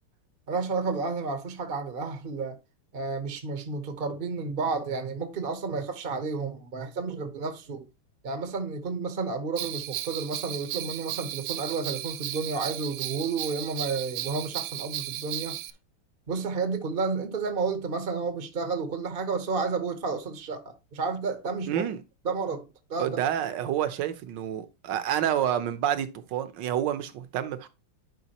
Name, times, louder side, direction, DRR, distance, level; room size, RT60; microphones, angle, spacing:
voice 1, 0.5-2.6 2.9-7.8 8.2-15.6 16.3-21.9 22.2-23.2, right 4 dB, 45° right, 0.7 m, -31 dB
Bell, 9.6-15.7, right 14 dB, 90° right, 1.5 m, -35 dB
voice 2, 21.7-22.0 23.0-27.7, right 10 dB, 65° right, 1.3 m, -28 dB
11.0 x 4.8 x 2.9 m
omnidirectional pair, 2.4 m